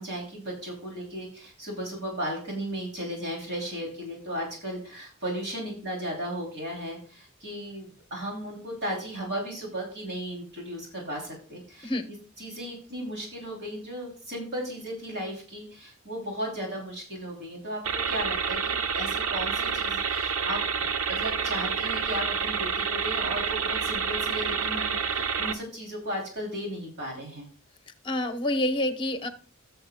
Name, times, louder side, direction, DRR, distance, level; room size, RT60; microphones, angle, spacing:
voice 1, 0.0-27.5, equal, 50° right, -1 dB, 3.1 m, -35 dB
sound 1, 17.8-25.5, right 6 dB, 70° right, 0.8 m, -28 dB
voice 2, 28.0-29.3, left 1 dB, 20° left, 8 dB, 1.0 m, -27 dB
18.0 x 6.8 x 2.2 m, 0.40 s
head